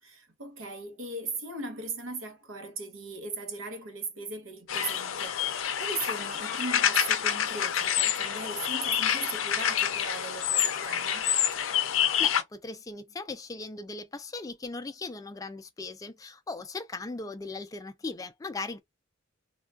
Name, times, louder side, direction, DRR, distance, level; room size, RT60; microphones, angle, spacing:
voice 1, 0.0-11.3, right 3 dB, 80° right, 0.8 m, -38 dB
sound 1, 4.7-12.4, left 9 dB, 80° left, 0.5 m, -27 dB
voice 2, 11.9-18.8, left 3 dB, 15° left, 0.3 m, -38 dB
3.3 x 2.3 x 2.3 m
head